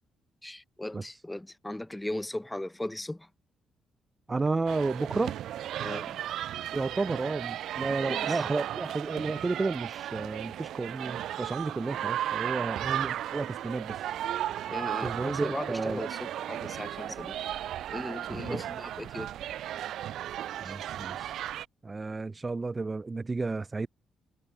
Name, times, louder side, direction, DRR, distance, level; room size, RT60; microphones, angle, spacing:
voice 1, 0.4-3.3 5.8-6.2 8.0-8.4 14.7-17.4 17.9-19.3 20.6-20.8, left 1 dB, 10° left, 4.3 m, -37 dB
voice 2, 4.3-5.3 6.7-13.9 14.7-16.0 18.3-18.6 20.6-21.4 21.8-23.9, right 3 dB, 25° right, 3.0 m, -32 dB
sound 1, 4.7-21.7, right 12 dB, 75° right, 2.4 m, -35 dB
cardioid pair, 90°, 0 cm